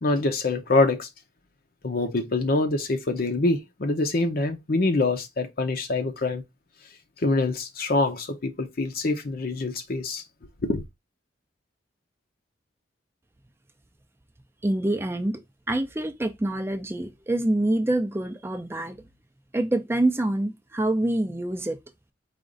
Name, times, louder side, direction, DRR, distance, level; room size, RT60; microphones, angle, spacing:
voice 1, 0.0-1.1 1.8-6.4 7.2-10.2 10.6-10.8, left 2 dB, 50° left, 0.6 m, -25 dB
voice 2, 14.6-19.0 19.5-21.8, right 1 dB, 15° right, 0.5 m, -26 dB
5.0 x 2.5 x 3.7 m
head